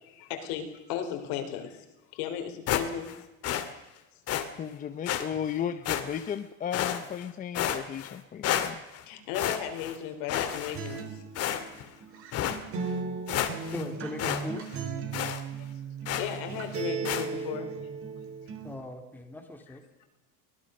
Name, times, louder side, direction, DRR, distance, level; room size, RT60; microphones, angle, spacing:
voice 1, 0.0-1.8 2.1-3.1 9.1-11.2 15.6-15.7 16.1-17.7 20.0-20.1, left 9 dB, 65° left, 6 dB, 4.3 m, -35 dB
sound 1, 2.7-3.2 3.4-3.7 4.3-4.4 5.0-5.2 5.8-6.3 6.7-7.2 7.5-8.1 8.4-9.0 9.3-9.9 10.3-11.0 11.3-11.9 12.3-12.6 13.0-13.1 13.3-13.8 14.2-14.4 14.7-14.8 15.1-15.4 16.0-16.4 17.0-17.3, left 11 dB, 40° left, 2.2 m, -30 dB
voice 2, 4.6-8.8, left 8 dB, 20° left, 9 dB, 0.8 m, -34 dB
Acoustic guitar, 10.7-18.7, right 5 dB, 35° right, 3.6 m, -37 dB
voice 3, 13.7-14.7 17.1-17.3 18.6-19.8, left 2 dB, 5° left, 4 dB, 2.3 m, -39 dB
24.0 x 18.5 x 6.5 m, 0.97 s
cardioid pair, 170°, 37 cm